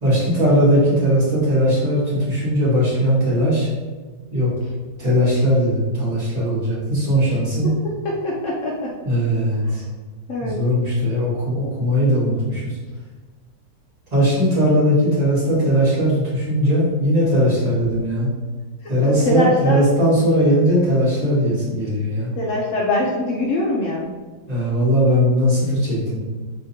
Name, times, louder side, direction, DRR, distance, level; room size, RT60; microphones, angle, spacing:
voice 1, 0.0-3.7 4.3-4.5 5.0-7.7 9.0-9.8 10.4-12.8 14.1-18.3 18.9-22.3 24.5-26.4, equal, 25° right, -10 dB, 1.6 m, -19 dB
voice 2, 7.6-9.0 9.6-9.8 10.3-10.6 18.8-19.8 22.3-24.1, left 1 dB, 75° left, -2 dB, 0.7 m, -23 dB
3.6 x 3.3 x 2.7 m, 1.3 s
omnidirectional pair, 1.8 m